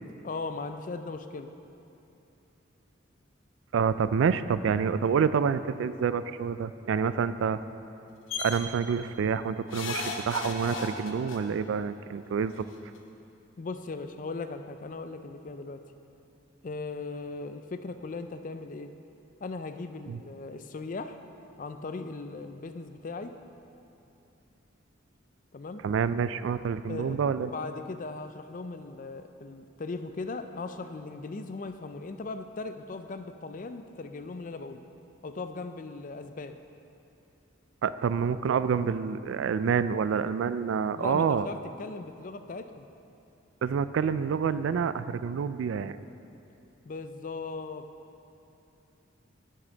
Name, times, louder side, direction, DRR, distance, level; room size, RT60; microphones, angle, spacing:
voice 1, 0.2-1.5 13.6-15.8 16.6-18.9 19.4-21.2 21.6-23.3 25.5-25.8 26.9-34.8 35.2-36.6 40.9-42.9 46.8-47.9, left 3 dB, 40° left, 9 dB, 0.4 m, -38 dB
voice 2, 3.7-7.6 8.4-12.7 20.1-20.2 25.8-27.5 37.8-41.5 43.6-46.0, right 6 dB, 75° right, 14 dB, 0.3 m, -27 dB
sound 1, 8.3-8.6 9.7-11.4 12.6-12.7 13.0-13.1, left 4 dB, 85° left, 1.0 m, -34 dB
15.5 x 6.6 x 3.9 m, 2.8 s
head